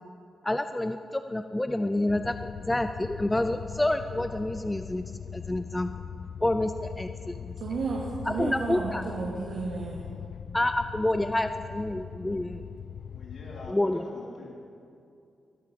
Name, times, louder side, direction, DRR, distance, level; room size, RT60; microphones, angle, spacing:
voice 1, 0.4-5.9 6.4-7.6 8.3-9.0 10.5-12.6 13.7-14.0, left 1 dB, 10° left, 8 dB, 0.4 m, -28 dB
sound 1, 2.1-13.7, left 8 dB, 75° left, 0.4 m, -41 dB
voice 2, 7.6-10.1, right 4 dB, 65° right, -4 dB, 2.4 m, -32 dB
voice 3, 13.0-14.5, left 2 dB, 55° left, -3 dB, 3.8 m, -44 dB
22.5 x 8.4 x 7.7 m, 2.5 s
wide cardioid pair, 175°, 0 cm